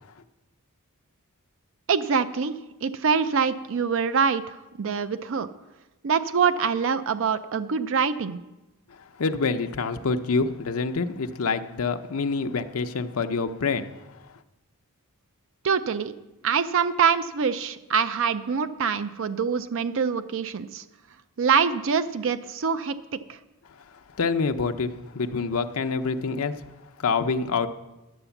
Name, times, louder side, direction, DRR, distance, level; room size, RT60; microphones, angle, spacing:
voice 1, 1.9-5.5 6.0-8.4 15.6-16.1 16.4-20.8 21.4-23.4, right 6 dB, 60° right, 12 dB, 0.5 m, -25 dB
voice 2, 9.0-13.9 24.2-26.5 27.0-27.7, left 4 dB, 70° left, 7 dB, 0.6 m, -26 dB
11.0 x 7.9 x 7.0 m, 1.0 s
head